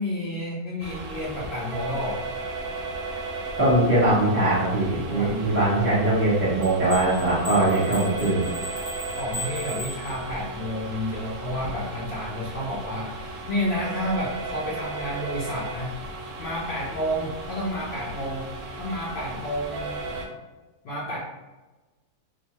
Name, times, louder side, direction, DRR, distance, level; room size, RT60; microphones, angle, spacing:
voice 1, 0.0-2.2 5.1-5.7 9.2-16.0 16.4-20.1 20.8-21.2, equal, 85° left, -5 dB, 0.5 m, -30 dB
sound 1, 0.8-20.3, right 2 dB, 90° right, 1.2 m, -35 dB
voice 2, 3.6-8.5, right 1 dB, 15° right, -12 dB, 0.5 m, -21 dB
sound 2, 6.6-10.6, equal, 45° left, 0.7 m, -38 dB
3.0 x 2.0 x 2.9 m, 1.2 s
omnidirectional pair, 1.7 m